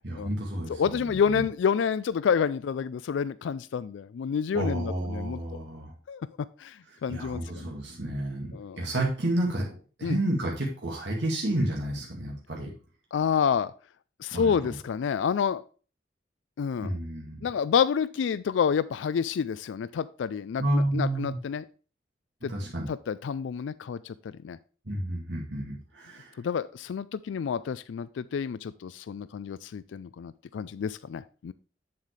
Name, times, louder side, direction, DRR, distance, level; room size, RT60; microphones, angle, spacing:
voice 1, 0.0-1.4 4.5-5.9 7.1-8.5 8.8-12.7 14.3-14.7 16.8-17.5 20.6-21.4 22.4-22.9 24.9-26.3, right 1 dB, 70° right, -2 dB, 2.0 m, -30 dB
voice 2, 0.7-5.6 6.1-6.2 6.6-7.6 8.5-8.8 10.0-10.2 13.1-13.7 14.2-15.6 16.6-16.9 17.4-21.7 22.4-22.5 22.9-24.6 26.4-31.5, left 7 dB, 85° left, 16 dB, 0.3 m, -29 dB
7.5 x 7.3 x 3.2 m, 0.37 s
head